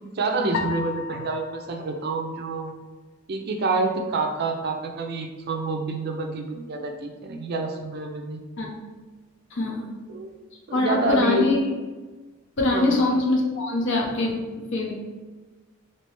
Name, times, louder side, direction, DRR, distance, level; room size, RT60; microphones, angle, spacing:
voice 1, 0.0-2.7 3.3-8.4 10.1-10.3 10.7-11.5 12.7-13.0, right 3 dB, 50° right, 3 dB, 0.4 m, -27 dB
sound 1, 0.5-3.0, left 5 dB, 90° left, 0.4 m, -35 dB
voice 2, 9.5-9.8 10.7-11.7 12.6-14.9, left 2 dB, 60° left, -1 dB, 0.7 m, -23 dB
3.2 x 2.9 x 3.1 m, 1.3 s
head